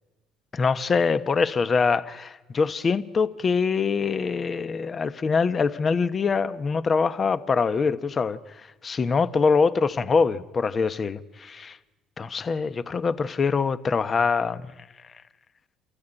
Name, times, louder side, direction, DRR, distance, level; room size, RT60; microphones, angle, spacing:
voice 1, 0.5-8.4 8.8-11.8 12.2-14.7, left 5 dB, 35° left, 13 dB, 1.0 m, -24 dB
28.5 x 14.0 x 9.1 m, 1.2 s
supercardioid pair, 75°, 0 cm